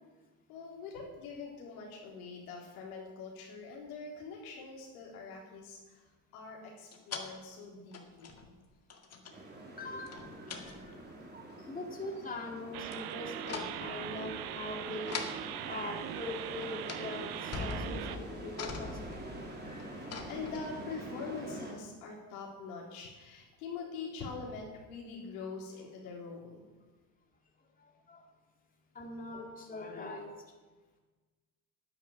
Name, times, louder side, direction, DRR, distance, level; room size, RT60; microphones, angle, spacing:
voice 1, 0.5-6.0 6.3-8.3 11.6-11.7 19.9-26.6, left 4 dB, 80° left, -2 dB, 4.0 m, -44 dB
sound 1, 6.9-7.3 7.9-8.6 8.9-9.4 10.1-11.1 12.9-13.1 13.4-13.9 15.1-15.4 16.3-16.4 16.6-17.1 17.4-21.0, left 4 dB, 35° left, 2.0 m, -42 dB
sound 2, 9.3-21.7, right 1 dB, 25° right, 3.9 m, -46 dB
voice 2, 9.8-10.4 11.7-19.3 27.8-28.3 28.9-30.4, left 2 dB, 20° left, 0 dB, 2.5 m, -42 dB
sound 3, 12.7-18.2, right 11 dB, 55° right, 1.0 m, -41 dB
10.5 x 9.2 x 7.2 m, 1.3 s
supercardioid pair, 90°, 44 cm